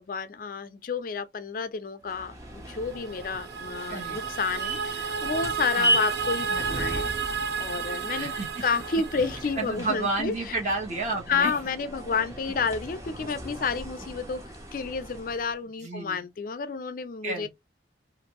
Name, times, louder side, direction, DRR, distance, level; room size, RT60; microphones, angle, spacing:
voice 1, 0.0-7.1 7.6-8.3 8.6-10.5 11.3-14.4 14.7-17.5, left 5 dB, 50° left, 0.4 m, -30 dB
sound 1, 2.0-15.6, right 1 dB, 15° right, 0.6 m, -36 dB
sound 2, 2.8-9.9, right 6 dB, 60° right, 0.4 m, -32 dB
voice 2, 9.6-11.5 15.8-16.2 17.2-17.5, right 3 dB, 40° right, 1.0 m, -31 dB
2.6 x 2.6 x 2.9 m
head